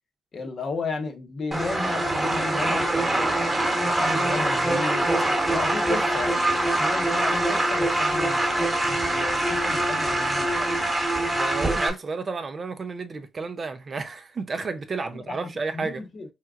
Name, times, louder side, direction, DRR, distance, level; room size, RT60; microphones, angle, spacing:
voice 1, 0.3-3.5 3.8-5.1 5.5-11.0 15.0-15.4 15.7-16.3, left 4 dB, 40° left, 0.9 m, -34 dB
sound 1, 1.5-11.9, right 1 dB, 10° right, 1.2 m, -24 dB
voice 2, 11.3-16.0, right 4 dB, 30° right, 0.5 m, -32 dB
4.4 x 3.6 x 2.3 m
cardioid pair, 160°, 0 cm